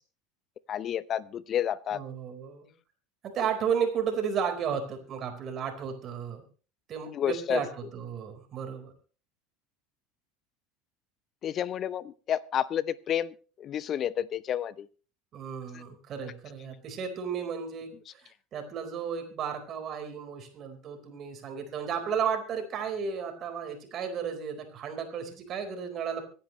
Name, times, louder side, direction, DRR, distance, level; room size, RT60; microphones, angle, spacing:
voice 1, 0.7-2.0 7.1-7.6 11.4-14.9, left 10 dB, 40° left, 19 dB, 0.7 m, -30 dB
voice 2, 1.9-2.7 3.2-6.4 6.9-8.9 15.3-17.9 18.5-26.2, right 7 dB, 40° right, 5 dB, 4.5 m, -33 dB
25.0 x 10.5 x 3.2 m, 0.38 s
figure-of-eight pair, 75°, 0 cm